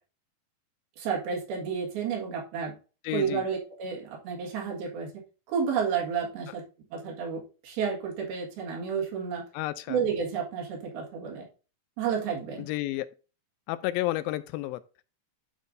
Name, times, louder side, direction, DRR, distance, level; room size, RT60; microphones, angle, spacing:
voice 1, 1.0-2.8 3.1-5.1 5.5-6.6 6.9-9.4 9.9-11.4 12.0-12.7, right 6 dB, 90° right, 3.8 m, -31 dB
voice 2, 3.0-3.5 9.5-10.0 12.6-13.1 13.7-14.8, left 16 dB, 85° left, 2.3 m, -31 dB
11.5 x 5.0 x 2.6 m
omnidirectional pair, 4.2 m